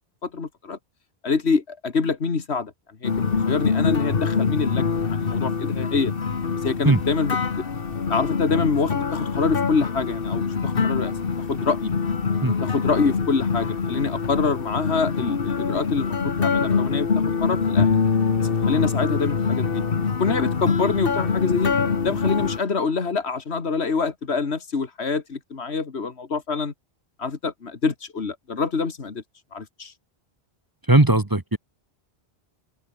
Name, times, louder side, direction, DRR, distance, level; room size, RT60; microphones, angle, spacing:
voice 1, 0.2-0.8 1.2-2.7 3.0-6.1 6.6-7.6 8.1-11.1 11.5-11.9 12.6-17.9 18.4-19.8 20.2-21.7 22.0-26.7 27.2-29.2 29.5-29.9, left 4 dB, 80° left, 2.1 m, -26 dB
sound 1, 3.0-22.6, left 5 dB, 60° left, 1.6 m, -24 dB
voice 2, 30.9-31.6, right 2 dB, 20° right, 1.2 m, -17 dB
omnidirectional pair, 1.1 m